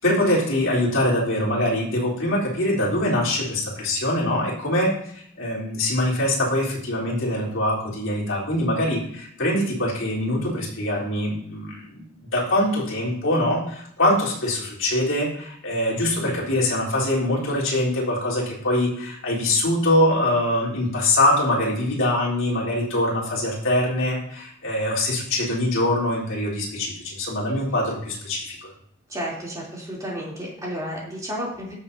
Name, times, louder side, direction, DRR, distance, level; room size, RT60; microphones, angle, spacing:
voice 1, 0.0-28.7, left 1 dB, 70° left, -6 dB, 3.9 m, -23 dB
voice 2, 29.1-31.7, equal, 15° right, -5 dB, 3.3 m, -32 dB
16.0 x 7.2 x 2.8 m, 0.68 s
head